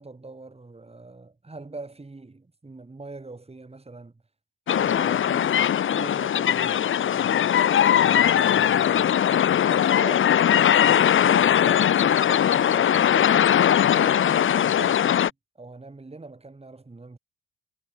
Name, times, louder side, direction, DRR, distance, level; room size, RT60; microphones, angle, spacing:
voice 1, 0.0-4.2 4.7-7.5 7.9-9.2 9.6-13.6 13.9-17.2, right 3 dB, 20° right, 7.5 m, -42 dB
sound 1, 4.7-15.3, left 9 dB, 45° left, 0.6 m, -20 dB
cardioid pair, 90°, 30 cm